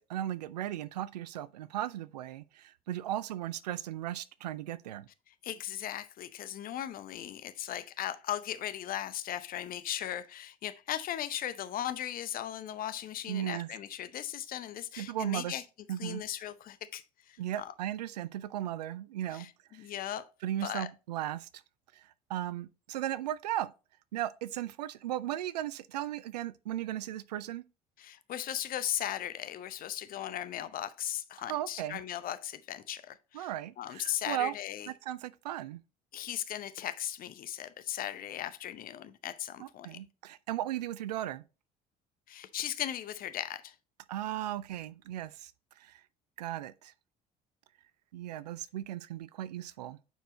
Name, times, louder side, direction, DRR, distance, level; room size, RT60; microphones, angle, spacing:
voice 1, 0.1-5.1 13.3-13.7 15.0-15.5 15.9-16.2 17.4-19.9 20.4-21.5 21.9-23.7 24.1-27.6 31.5-32.0 33.3-34.5 34.9-35.8 39.6-41.4 44.1-45.5 45.8-46.0 46.4-46.9 48.1-50.0, right 12 dB, 70° right, 0.4 m, -36 dB
voice 2, 5.3-15.6 16.0-17.7 19.3-20.3 20.6-20.9 28.0-33.5 33.8-34.9 36.1-40.0 42.3-43.7, left 11 dB, 45° left, 0.7 m, -37 dB
9.1 x 4.5 x 3.0 m
figure-of-eight pair, 55°, 21 cm